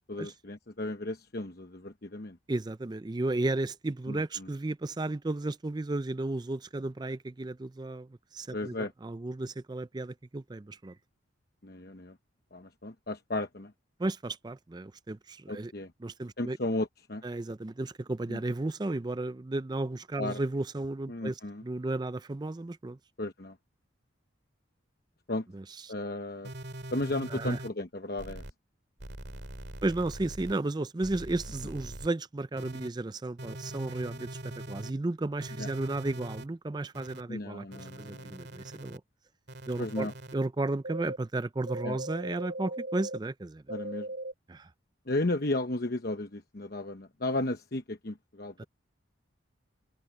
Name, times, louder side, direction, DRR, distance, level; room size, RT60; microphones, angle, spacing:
voice 1, 0.1-2.4 4.1-4.5 8.5-8.9 11.6-12.2 12.5-13.7 15.5-15.9 16.4-17.2 18.3-18.4 20.2-20.4 21.1-21.6 23.2-23.6 25.3-25.5 25.9-26.5 26.9-28.4 35.6-35.7 37.3-38.4 39.8-40.1 41.8-42.0 43.7-44.1 45.1-48.6, left 2 dB, 50° left, 1.0 m, -34 dB
voice 2, 2.5-10.9 14.0-15.7 16.0-16.6 17.2-23.0 25.5-25.6 27.3-27.6 29.8-39.0 39.7-43.6 44.5-44.7 48.6-48.7, right 2 dB, 20° right, 0.4 m, -34 dB
sound 1, 26.4-27.7 28.2-28.5 29.0-30.5 31.0-32.1 32.6-32.9 33.4-34.9 35.4-36.4 36.9-37.2 37.7-39.0 39.5-40.3 40.8-41.2 41.7-43.2 43.7-44.3, right 1 dB, 55° right, 2.3 m, -41 dB
head